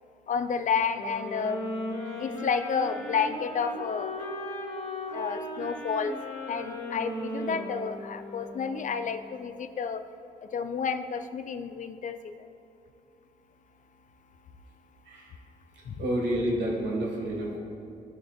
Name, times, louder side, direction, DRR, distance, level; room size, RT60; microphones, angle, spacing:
voice 1, 0.3-1.6 2.2-4.2 5.1-6.2 6.5-10.0 10.4-12.3 15.9-16.0, left 6 dB, 40° left, 10 dB, 0.5 m, -30 dB
sound 1, 0.9-8.9, left 1 dB, 70° left, 2.0 m, -37 dB
voice 2, 2.0-2.4 15.1-15.3 15.7-17.6, right 1 dB, 60° right, -2 dB, 1.9 m, -30 dB
15.5 x 5.8 x 2.4 m, 2.6 s
hypercardioid pair, 45°, 21 cm